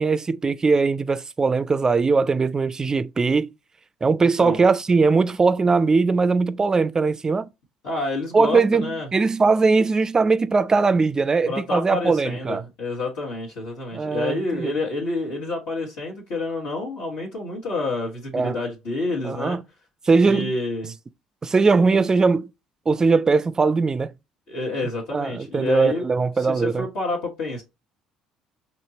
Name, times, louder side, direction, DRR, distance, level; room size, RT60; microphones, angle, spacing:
voice 1, 0.0-3.5 4.0-7.5 8.3-12.6 13.9-14.8 18.3-18.6 19.2-19.6 20.1-20.5 21.4-22.5 22.9-24.1 25.1-26.9, right 4 dB, 30° right, 0.4 m, -20 dB
voice 2, 4.2-4.6 7.8-9.1 11.5-19.6 20.2-20.9 24.5-26.0 26.4-27.6, left 2 dB, 70° left, 1.3 m, -28 dB
4.3 x 3.0 x 2.8 m
hypercardioid pair, 55°, 2 cm